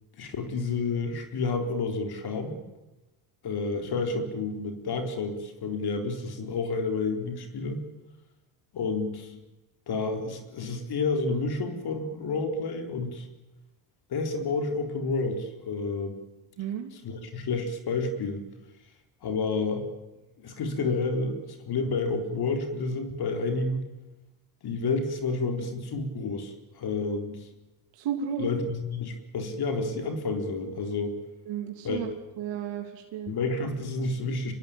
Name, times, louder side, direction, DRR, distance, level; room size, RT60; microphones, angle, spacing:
voice 1, 0.2-2.6 3.4-7.8 8.7-9.4 9.9-13.3 14.1-16.2 16.9-18.4 19.2-19.8 20.4-23.8 24.6-27.5 28.4-31.2 31.8-32.0 33.3-34.5, left 3 dB, 50° left, 5 dB, 4.2 m, -30 dB
voice 2, 16.6-16.9 28.0-28.5 31.5-32.1 32.4-33.3, right 8 dB, 65° right, 3 dB, 3.2 m, -33 dB
25.5 x 21.5 x 8.9 m, 1.0 s
cardioid pair, 105°, 47 cm